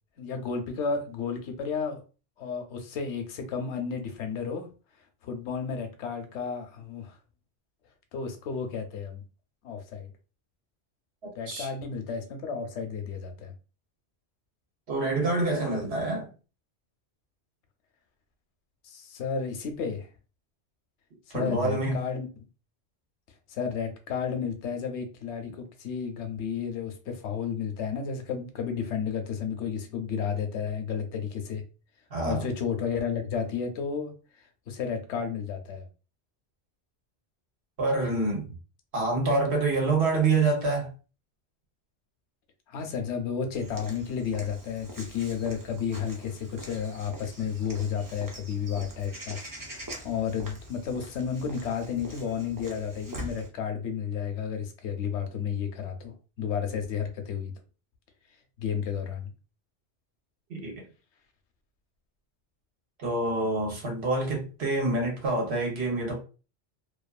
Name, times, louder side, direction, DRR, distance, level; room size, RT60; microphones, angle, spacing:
voice 1, 0.2-2.0 2.4-4.7 5.2-7.2 8.1-9.2 9.6-10.1 11.4-13.5 18.8-20.1 21.3-22.3 23.5-31.6 32.2-34.1 34.7-35.9 42.7-57.5 58.6-59.3, left 6 dB, 85° left, 0.9 m, -32 dB
voice 2, 14.9-16.3 21.3-21.9 32.1-32.4 37.8-38.5 38.9-40.9 60.5-60.8 63.0-66.2, right 3 dB, 70° right, 1.2 m, -26 dB
Walk footsteps / Bird vocalization bird call bird song, 43.5-53.5, equal, 30° right, 0.3 m, -44 dB
2.6 x 2.4 x 2.3 m
omnidirectional pair, 1.2 m